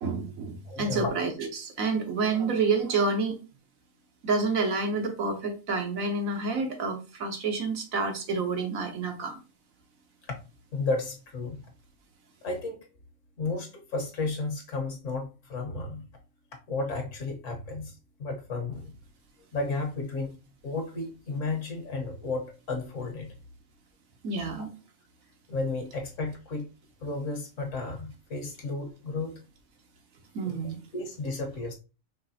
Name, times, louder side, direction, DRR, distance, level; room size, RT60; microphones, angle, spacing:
voice 1, 0.0-3.4 4.2-9.4 24.2-24.7 30.3-30.8, right 4 dB, 90° right, 4 dB, 1.4 m, -28 dB
voice 2, 0.7-1.1 10.7-11.6 12.4-12.8 13.4-16.1 16.7-17.9 18.2-18.9 19.5-20.3 20.6-23.3 24.6-24.7 25.5-26.7 27.0-29.3 30.4-30.6 30.9-31.7, left 3 dB, 70° left, 2 dB, 1.4 m, -33 dB
5.3 x 3.1 x 2.7 m, 0.31 s
omnidirectional pair, 1.4 m